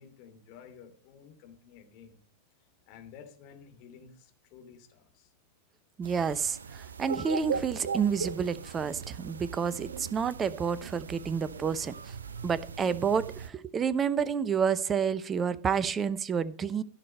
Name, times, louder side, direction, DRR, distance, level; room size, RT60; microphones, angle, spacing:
voice 1, 0.0-2.2 2.9-5.3, left 7 dB, 45° left, 5 dB, 2.9 m, -52 dB
voice 2, 6.0-11.9 12.4-16.8, right 6 dB, 20° right, 17 dB, 0.8 m, -29 dB
sound 1, 6.0-13.5, right 6 dB, 70° right, 0.7 m, -39 dB
16.0 x 6.6 x 5.4 m, 0.42 s
figure-of-eight pair, 90°, 0 cm